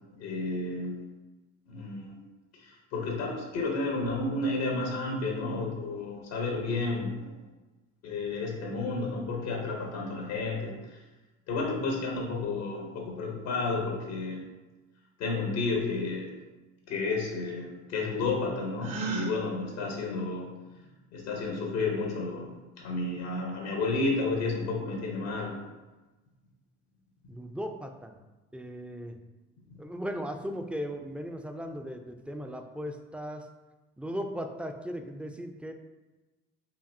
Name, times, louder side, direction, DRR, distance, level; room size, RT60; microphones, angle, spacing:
voice 1, 0.2-1.0 1.7-2.2 2.6-7.3 8.0-11.0 11.5-14.5 15.2-16.3 16.9-20.5 20.8-20.9 21.1-25.6, left 3 dB, 85° left, 0 dB, 0.9 m, -31 dB
Gasp, 18.8-19.4, right 4 dB, 50° right, 0.8 m, -33 dB
voice 2, 27.3-28.2 28.5-29.2 29.8-33.5 34.0-35.7, equal, 5° right, 5 dB, 0.3 m, -37 dB
5.0 x 2.6 x 2.6 m, 1.2 s
hypercardioid pair, 60°, 35 cm